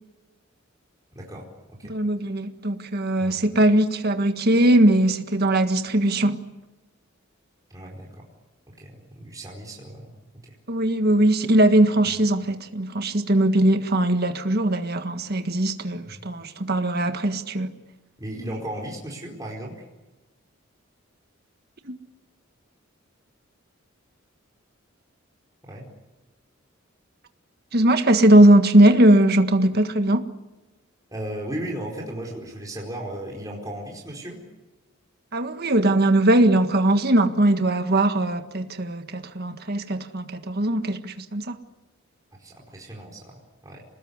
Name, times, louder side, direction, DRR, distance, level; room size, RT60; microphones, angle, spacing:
voice 1, 1.1-1.9 3.2-3.6 7.7-8.3 8.8-10.1 10.4-10.5 12.1-12.2 16.0-16.3 18.2-19.8 25.6-25.8 31.1-34.4 42.4-43.8, right 1 dB, 15° right, 4.5 m, -36 dB
voice 2, 1.9-6.4 10.7-17.7 21.8-21.9 27.7-30.2 35.3-41.6, right 1 dB, 50° right, 1.7 m, -20 dB
27.0 x 20.0 x 9.7 m
head